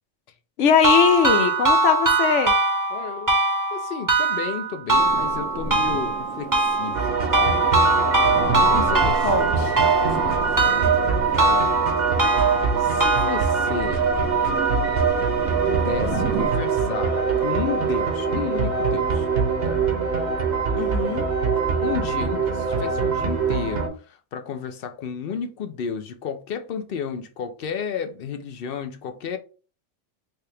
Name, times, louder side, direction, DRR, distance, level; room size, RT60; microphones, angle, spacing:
voice 1, 0.6-2.6 8.7-9.7 20.7-21.2, left 7 dB, 80° left, 1.0 m, -21 dB
sound 1, 0.8-13.8, right 2 dB, 20° right, 0.7 m, -22 dB
voice 2, 2.9-3.4 3.7-8.0 8.5-9.5 10.0-11.7 12.8-14.0 15.6-19.3 19.6-19.8 21.8-29.4, left 7 dB, 60° left, 0.7 m, -33 dB
sound 2, 4.9-16.5, right 5 dB, 80° right, 1.0 m, -33 dB
sound 3, 6.9-23.9, right 5 dB, 55° right, 1.0 m, -23 dB
3.4 x 2.8 x 3.2 m
omnidirectional pair, 1.3 m